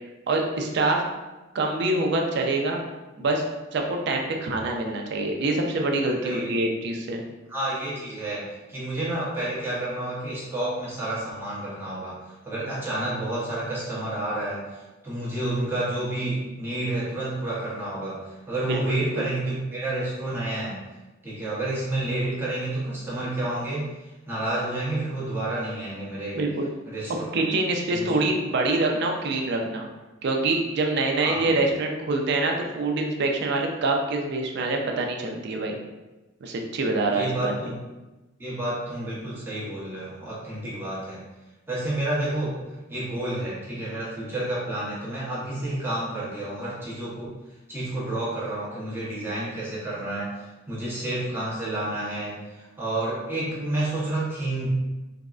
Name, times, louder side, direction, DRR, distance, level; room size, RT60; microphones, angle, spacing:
voice 1, 0.3-1.0 1.5-2.8 3.2-3.4 3.7-7.2 18.7-19.2 26.3-26.7 27.3-29.9 30.2-35.8 36.4-37.5, right 2 dB, 55° right, 2 dB, 0.4 m, -25 dB
voice 2, 6.2-6.6 7.5-20.8 21.2-24.0 24.3-26.4 26.9-27.4 27.9-28.2 31.2-31.6 37.1-37.8 38.4-41.2 41.7-47.4 47.7-54.7, right 1 dB, 10° right, -8 dB, 0.8 m, -30 dB
3.4 x 2.0 x 2.3 m, 1.1 s
head